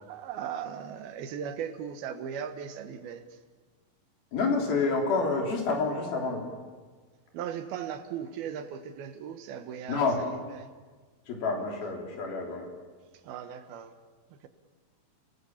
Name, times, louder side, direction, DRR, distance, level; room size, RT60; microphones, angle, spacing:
voice 1, 0.0-3.4 7.3-10.7 13.2-14.0 14.3-14.5, right 8 dB, 85° right, 9 dB, 3.1 m, -38 dB
voice 2, 4.3-6.4 9.9-10.3 11.3-12.7, left 4 dB, 75° left, 1 dB, 5.2 m, -28 dB
29.0 x 19.0 x 7.3 m, 1.4 s
omnidirectional pair, 4.3 m